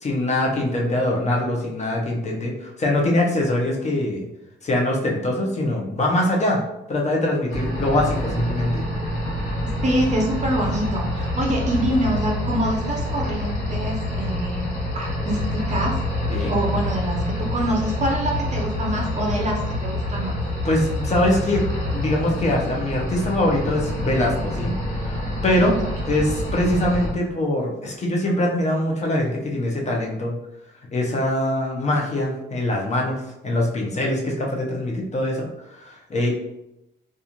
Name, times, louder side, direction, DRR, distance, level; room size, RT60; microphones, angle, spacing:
voice 1, 0.0-4.3 4.6-6.6 6.9-8.8 16.3-16.5 20.6-21.6 21.9-24.7 25.0-25.7 26.1-30.4 30.9-33.2 33.4-36.3, left 1 dB, 35° left, -1 dB, 0.7 m, -23 dB
sound 1, 7.5-27.1, left 1 dB, 80° left, 1.1 m, -27 dB
voice 2, 9.8-14.7 14.9-16.0 16.5-20.4 25.6-25.7, right 1 dB, 35° right, -1 dB, 0.6 m, -25 dB
2.4 x 2.4 x 2.8 m, 0.88 s
cardioid pair, 90°, 20 cm